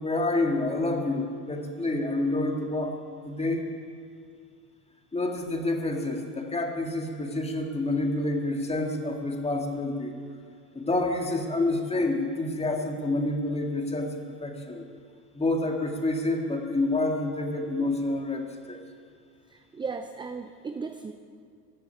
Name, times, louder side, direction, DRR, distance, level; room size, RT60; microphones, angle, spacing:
voice 1, 0.0-3.0 3.2-3.7 5.1-10.1 10.7-14.8 15.3-18.8, left 2 dB, 15° left, 2 dB, 2.0 m, -28 dB
voice 2, 19.5-21.1, right 4 dB, 10° right, 7 dB, 0.4 m, -36 dB
14.5 x 7.0 x 9.6 m, 2.2 s
supercardioid pair, 100°, 47 cm